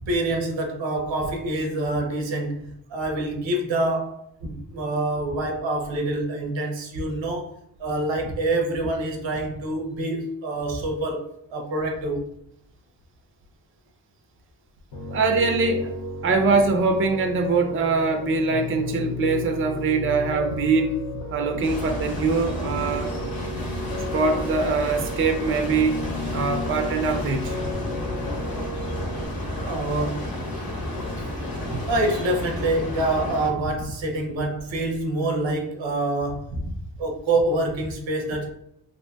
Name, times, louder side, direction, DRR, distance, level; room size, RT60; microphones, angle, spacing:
voice 1, 0.0-7.5 7.8-11.2 11.5-12.3 29.6-30.3 31.8-36.6 37.0-38.5, right 2 dB, 85° right, 3 dB, 0.7 m, -26 dB
Piano, 14.9-29.3, left 2 dB, 85° left, 0.6 m, -34 dB
voice 2, 15.1-16.0 16.2-21.0 21.3-23.1 24.1-26.0 26.3-27.6, right 4 dB, 30° right, 5 dB, 0.4 m, -23 dB
sound 1, 21.6-33.5, left 1 dB, 50° left, 0.9 m, -31 dB
2.7 x 2.6 x 2.2 m, 0.73 s
cardioid pair, 55°, 44 cm